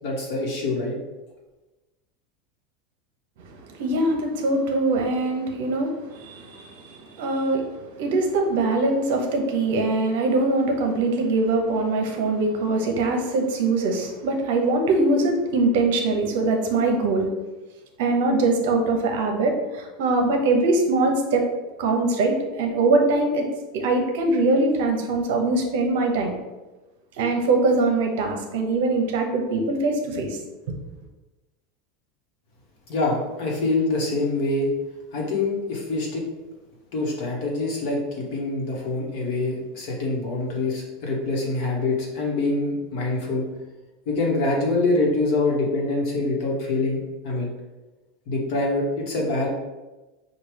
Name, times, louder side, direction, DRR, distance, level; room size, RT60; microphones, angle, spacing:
voice 1, 0.0-1.0 32.9-34.7 35.1-36.2 36.9-43.5 44.1-47.5 48.3-49.5, left 2 dB, 50° left, -1 dB, 1.1 m, -25 dB
voice 2, 3.4-17.3 18.0-21.5 21.8-23.5 23.7-26.4 27.2-30.4, right 2 dB, 65° right, 3 dB, 0.8 m, -22 dB
6.0 x 2.3 x 3.3 m, 1.1 s
supercardioid pair, 175°, 0 cm